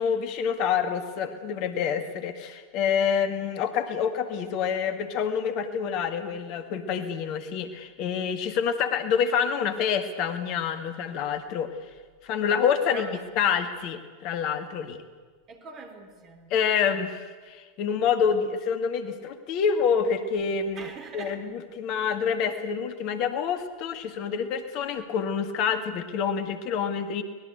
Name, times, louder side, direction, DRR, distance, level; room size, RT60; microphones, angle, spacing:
voice 1, 0.0-11.7 12.2-13.1 13.4-15.0 16.5-27.2, left 7 dB, 50° left, 9 dB, 2.0 m, -27 dB
voice 2, 12.9-13.2 15.5-16.5 20.8-21.4, right 4 dB, 35° right, 7 dB, 3.7 m, -41 dB
24.0 x 19.5 x 8.2 m, 1.5 s
figure-of-eight pair, 85°, 0 cm